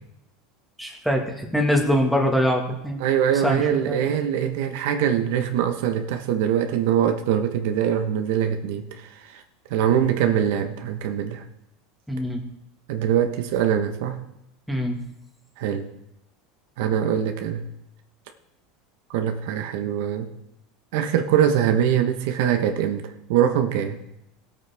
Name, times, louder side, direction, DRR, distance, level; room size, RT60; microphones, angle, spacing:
voice 1, 0.8-3.0 3.3-4.1 12.1-12.4 14.7-15.0, equal, ahead, 1 dB, 1.7 m, -23 dB
voice 2, 3.0-9.4 9.7-11.4 12.9-14.2 15.6-15.9 16.8-17.6 19.1-20.3 20.9-24.0, right 9 dB, 70° right, 6 dB, 1.1 m, -23 dB
17.0 x 8.6 x 3.5 m, 0.84 s
supercardioid pair, 145°, 0 cm